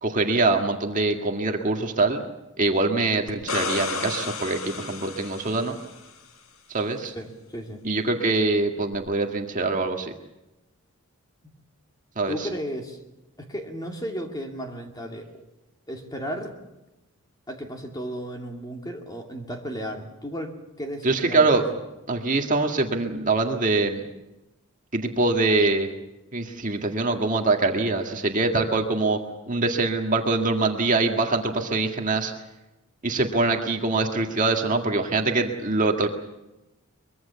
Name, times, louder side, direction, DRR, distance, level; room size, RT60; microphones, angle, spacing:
voice 1, 0.0-2.2 2.6-5.8 6.7-7.1 7.8-10.1 12.2-12.5 21.0-21.6 22.1-24.0 24.9-25.9 26.3-29.2 29.5-32.3 33.0-36.1, right 3 dB, 35° right, 3 dB, 1.9 m, -24 dB
sound 1, 3.3-6.1 8.9-9.0, left 4 dB, 70° left, 1.9 m, -32 dB
voice 2, 7.1-7.8 12.3-13.0 13.4-15.3 15.9-16.5 17.5-20.5 20.8-21.6, equal, 15° left, 3 dB, 2.5 m, -34 dB
23.5 x 23.0 x 7.0 m, 0.97 s
head